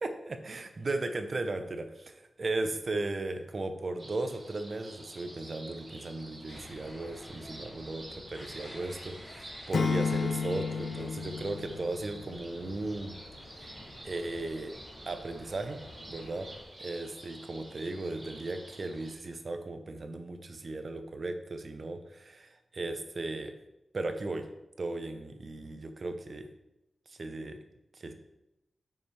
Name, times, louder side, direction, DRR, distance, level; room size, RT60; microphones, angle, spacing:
voice 1, 0.0-1.9 2.4-13.1 14.0-14.7 15.1-15.8 16.1-16.5 16.8-23.5 23.9-24.5 24.8-26.5 27.1-27.6 27.9-28.1, right 2 dB, 40° right, 7 dB, 0.7 m, -36 dB
sound 1, 4.0-19.1, right 1 dB, 20° right, 1.6 m, -50 dB
sound 2, 6.5-16.6, left 1 dB, 30° left, 2.0 m, -51 dB
Acoustic guitar / Strum, 9.7-12.8, left 5 dB, 60° left, 0.3 m, -32 dB
8.5 x 5.6 x 3.3 m, 0.90 s
wide cardioid pair, 150°, 0 cm